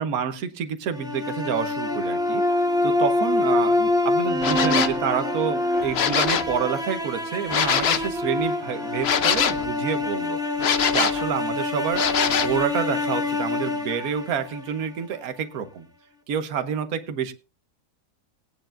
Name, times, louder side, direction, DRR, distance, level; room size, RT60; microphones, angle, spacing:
voice 1, 0.0-10.4 10.9-15.9 16.3-17.3, right 7 dB, 65° right, 1.4 m, -28 dB
sound 1, 0.9-15.0, left 2 dB, 5° right, 1.0 m, -26 dB
sound 2, 4.4-5.0 5.8-6.6 7.5-8.1 9.0-9.7 10.6-11.2 11.9-12.6, left 8 dB, 55° left, 0.8 m, -23 dB
19.0 x 9.5 x 2.5 m
omnidirectional pair, 1.7 m